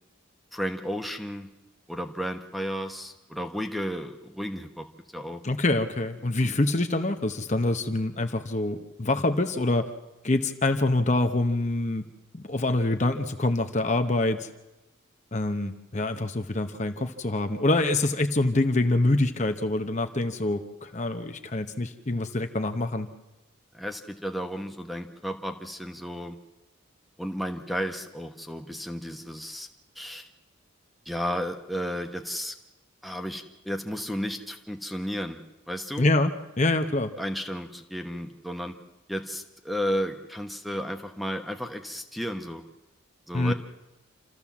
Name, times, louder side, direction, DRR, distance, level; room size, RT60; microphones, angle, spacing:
voice 1, 0.5-1.5 1.9-4.9 5.1-5.4 6.4-6.6 23.7-26.4 27.2-29.7 29.9-30.3 31.0-32.5 33.0-35.4 35.7-36.0 37.2-38.7 39.1-42.6 43.3-43.5, equal, ahead, 6 dB, 1.0 m, -33 dB
voice 2, 5.4-9.9 10.2-12.1 12.3-14.5 15.3-23.1 36.0-37.1 43.3-43.5, left 2 dB, 35° left, 7 dB, 0.9 m, -25 dB
27.5 x 14.0 x 7.3 m, 1.0 s
head